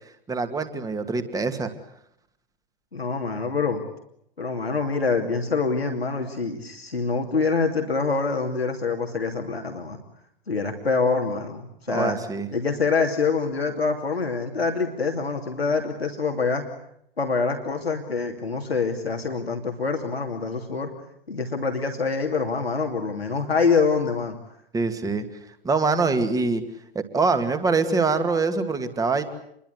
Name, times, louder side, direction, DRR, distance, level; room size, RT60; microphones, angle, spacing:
voice 1, 0.3-1.7 11.9-12.5 24.7-25.2 25.6-26.6 26.9-29.2, right 4 dB, 10° right, 9 dB, 2.4 m, -24 dB
voice 2, 2.9-3.8 4.4-10.0 10.5-12.2 12.5-16.7 17.2-20.9 21.3-24.4, left 4 dB, 85° left, 3 dB, 2.8 m, -25 dB
28.0 x 23.0 x 8.2 m, 0.73 s
figure-of-eight pair, 105°, 30 cm